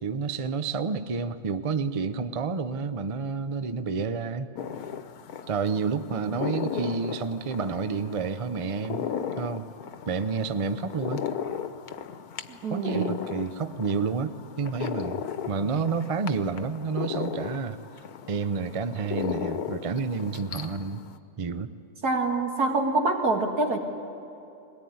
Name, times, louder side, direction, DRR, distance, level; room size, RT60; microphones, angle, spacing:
voice 1, 0.0-4.5 5.5-9.1 9.4-9.7 10.1-11.3 12.7-17.8 18.3-21.0 21.4-21.7, right 5 dB, 50° right, 11 dB, 0.4 m, -29 dB
sound 1, 4.6-21.2, left 8 dB, 70° left, 1.3 m, -36 dB
voice 2, 6.1-6.4 12.5-13.3 22.0-23.8, right 3 dB, 75° right, 3 dB, 2.6 m, -26 dB
22.0 x 18.5 x 9.4 m, 2.8 s
omnidirectional pair, 1.7 m